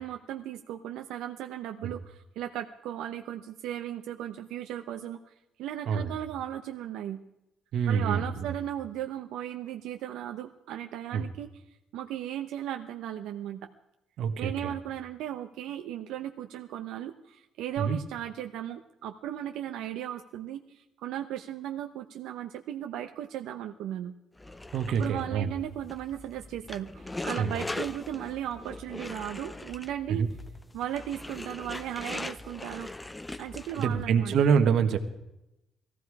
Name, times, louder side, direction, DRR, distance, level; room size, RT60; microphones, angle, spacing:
voice 1, 0.0-5.2 5.6-7.2 7.9-11.5 11.9-13.7 14.4-24.1 24.9-30.2 30.7-32.9 33.4-34.3, right 11 dB, 85° right, 5 dB, 0.9 m, -36 dB
voice 2, 7.7-8.3 11.1-11.2 14.2-14.7 17.8-18.0 24.7-25.5 27.4-27.5 30.1-30.3 33.7-35.0, right 6 dB, 60° right, 8 dB, 1.5 m, -26 dB
sound 1, 24.4-34.1, left 2 dB, 10° left, 0.5 m, -40 dB
19.5 x 15.0 x 4.8 m, 0.89 s
cardioid pair, 165°, 0 cm